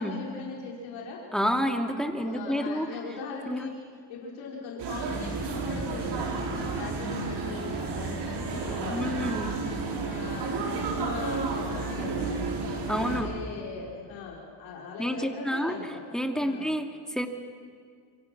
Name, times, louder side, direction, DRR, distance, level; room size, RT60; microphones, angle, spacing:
voice 1, 0.0-1.2 2.2-3.7 4.1-9.4 10.0-12.4 12.9-16.0 16.4-16.7, left 4 dB, 90° left, -3 dB, 4.5 m, -40 dB
voice 2, 1.3-2.9 3.5-3.7 8.9-9.6 12.9-13.3 15.0-15.8 16.1-17.3, equal, ahead, 3 dB, 2.5 m, -29 dB
sound 1, 4.8-13.2, right 4 dB, 65° right, 5.1 m, -31 dB
26.0 x 25.5 x 6.1 m, 2.1 s
cardioid pair, 90°, 44 cm